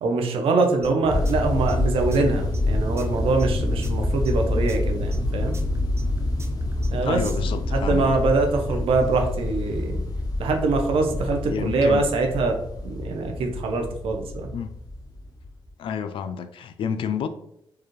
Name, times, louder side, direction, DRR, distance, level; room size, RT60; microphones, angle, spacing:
voice 1, 0.0-5.6 6.9-7.2 7.7-10.0 10.4-12.6 12.8-14.5, right 3 dB, 80° right, 0.7 m, -23 dB
sound 1, 0.8-7.5, right 2 dB, 30° right, 0.7 m, -40 dB
sound 2, 1.1-15.7, left 2 dB, 40° left, 0.8 m, -27 dB
voice 2, 7.0-8.0 11.5-12.1 14.5-14.7 15.8-17.3, left 7 dB, 70° left, 0.4 m, -29 dB
4.7 x 2.4 x 3.1 m
cardioid pair, 75°, 9 cm